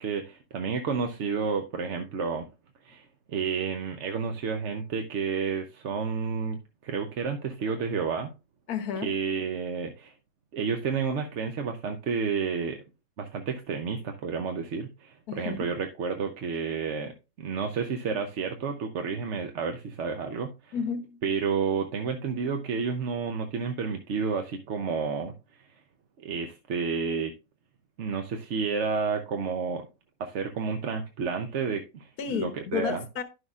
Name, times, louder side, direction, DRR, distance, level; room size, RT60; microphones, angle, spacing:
voice 1, 0.0-2.4 2.8-8.3 9.0-10.1 10.5-12.8 13.2-17.1 17.4-20.7 21.2-25.3 26.2-27.3 28.0-29.9 30.2-33.0, right 5 dB, 60° right, 1.0 m, -30 dB
voice 2, 8.7-9.1 15.3-15.6 20.7-21.2 32.2-33.2, left 7 dB, 85° left, 1.5 m, -32 dB
10.5 x 6.3 x 2.4 m
omnidirectional pair, 1.6 m